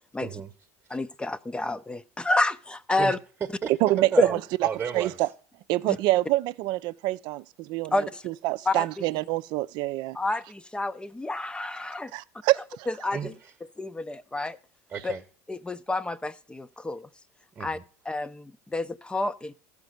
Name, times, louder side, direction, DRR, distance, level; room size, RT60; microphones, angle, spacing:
voice 1, 0.2-0.5 0.9-1.0 3.0-3.7 4.0-5.3 13.1-13.5 14.9-15.2 17.5-17.8, right 7 dB, 30° right, 1.1 m, -33 dB
voice 2, 0.9-3.2 4.2-4.3 5.9-6.0 7.9-8.2 8.7-8.9 10.1-12.1 12.9-13.3 13.8-14.6 15.0-15.1 15.5-17.1 17.6-17.8 18.1-19.5, left 2 dB, 10° left, 0.6 m, -29 dB
voice 3, 3.8-4.4 4.9-5.3 5.7-10.2 12.1-12.9, right 17 dB, 60° right, 0.5 m, -26 dB
14.0 x 5.2 x 6.6 m
hypercardioid pair, 75°, 9 cm